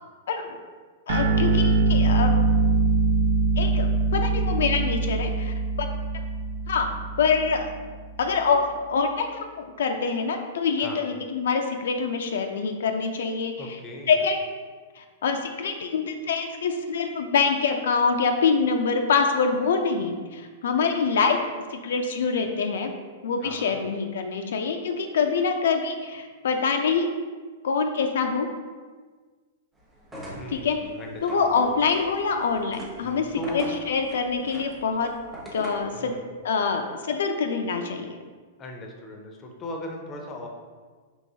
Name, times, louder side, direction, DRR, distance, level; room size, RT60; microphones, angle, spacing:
voice 1, 1.1-2.3 3.6-5.9 6.7-6.9 7.2-7.7 8.2-8.6 8.9-13.8 14.1-14.4 15.0-21.4 21.7-22.9 23.2-27.1 27.6-28.5 30.5-30.8 31.2-35.1 35.5-36.1 36.4-38.2, left 5 dB, 80° left, 5 dB, 0.4 m, -25 dB
sound 1, 1.1-7.9, right 3 dB, 70° right, 0.6 m, -23 dB
voice 2, 13.6-14.2 23.4-23.8 30.3-31.7 33.0-33.7 35.9-36.3 38.6-40.5, left 1 dB, 20° left, 2 dB, 0.5 m, -38 dB
sound 2, 30.0-36.0, equal, 10° right, 0.8 m, -40 dB
4.6 x 3.0 x 2.7 m, 1.5 s
hypercardioid pair, 150°, 0 cm